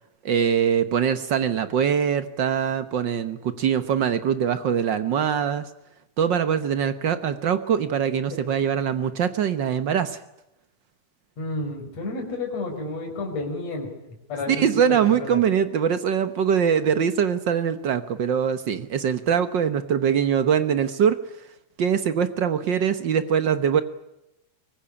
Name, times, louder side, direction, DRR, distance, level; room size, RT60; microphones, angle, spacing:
voice 1, 0.2-5.6 6.2-10.2 14.5-21.2 21.8-23.8, right 8 dB, 75° right, 11 dB, 1.0 m, -23 dB
voice 2, 11.4-13.9 14.3-14.7 15.1-15.4, left 2 dB, 55° left, 2 dB, 5.8 m, -30 dB
23.5 x 19.5 x 9.8 m, 0.90 s
omnidirectional pair, 3.6 m